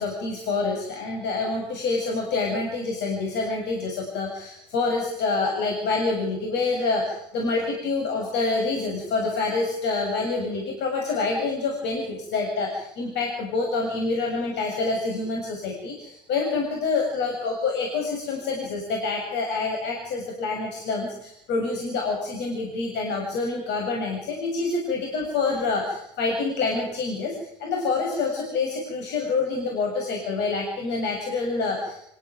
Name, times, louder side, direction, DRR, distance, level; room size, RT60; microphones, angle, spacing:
voice 1, 0.0-32.1, left 3 dB, 60° left, 1 dB, 7.3 m, -27 dB
26.5 x 15.0 x 9.3 m, 0.78 s
hypercardioid pair, 60°, 20 cm